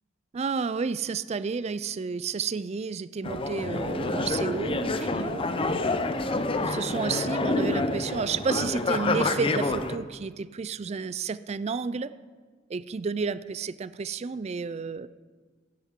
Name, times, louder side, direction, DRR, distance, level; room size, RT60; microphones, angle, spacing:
voice 1, 0.3-5.5 6.6-12.1 12.7-15.1, right 5 dB, 35° right, 15 dB, 0.3 m, -31 dB
sound 1, 3.2-10.0, left 2 dB, 30° left, 0.6 m, -28 dB
15.0 x 10.0 x 3.7 m, 1.5 s
head